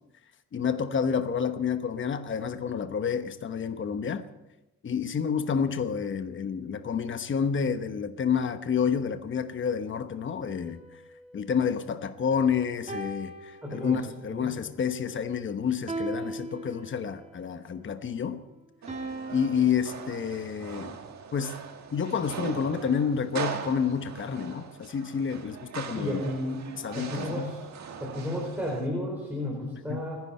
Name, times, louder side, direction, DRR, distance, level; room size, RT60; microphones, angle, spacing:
voice 1, 0.5-4.3 4.8-10.8 11.3-18.4 19.3-21.0 21.3-21.5 21.9-26.2 26.8-27.5 29.7-30.0, left 7 dB, 35° left, 1.0 m, -29 dB
sound 1, 10.6-12.3 12.9-14.3 15.9-17.3 18.9-20.4, right 2 dB, 20° right, 2.5 m, -39 dB
voice 2, 13.6-14.0 14.3-14.6 25.9-26.7 26.9-27.7 28.0-30.2, left 1 dB, 5° right, 4.4 m, -33 dB
sound 2, 18.8-28.9, right 7 dB, 55° right, 1.8 m, -40 dB
30.0 x 11.0 x 4.3 m
cardioid pair, 120°, 34 cm